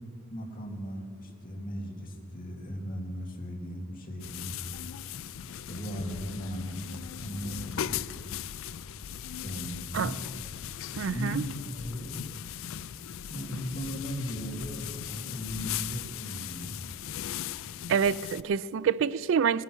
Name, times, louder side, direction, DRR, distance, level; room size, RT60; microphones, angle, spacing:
voice 1, 0.3-4.5 5.5-8.2 9.4-10.2 11.1-12.2 13.3-16.7, equal, 40° left, -1 dB, 2.2 m, -37 dB
sound 1, 4.2-18.4, left 10 dB, 65° left, 0.4 m, -38 dB
voice 2, 11.0-11.4 17.9-19.6, right 7 dB, 60° right, 19 dB, 0.3 m, -27 dB
19.0 x 11.0 x 6.1 m, 2.5 s
head